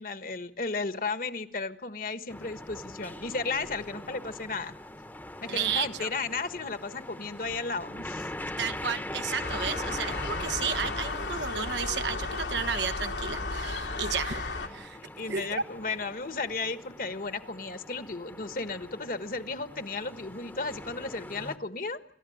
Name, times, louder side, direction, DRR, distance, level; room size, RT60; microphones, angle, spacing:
voice 1, 0.0-4.7 5.4-8.3 14.9-22.0, left 4 dB, 50° left, 10 dB, 1.4 m, -34 dB
sound 1, 2.3-21.6, left 1 dB, 10° left, 1.0 m, -42 dB
voice 2, 5.5-6.1 8.6-15.0 15.3-15.6, right 6 dB, 85° right, 10 dB, 1.3 m, -32 dB
sound 2, 9.4-14.7, left 3 dB, 90° left, 3.1 m, -34 dB
28.5 x 14.0 x 9.3 m, 0.74 s
head